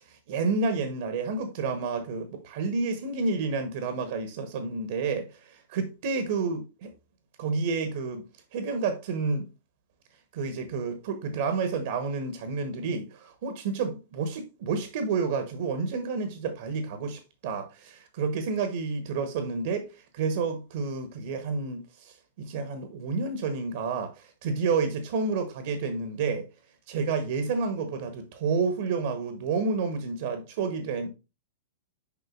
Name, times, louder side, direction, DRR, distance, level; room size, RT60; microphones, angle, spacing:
voice 1, 0.1-6.9 7.4-8.2 8.5-9.5 10.3-26.4 26.9-31.1, right 4 dB, 50° right, 1.0 m, -30 dB
7.0 x 5.4 x 2.5 m
figure-of-eight pair, 100°, 0 cm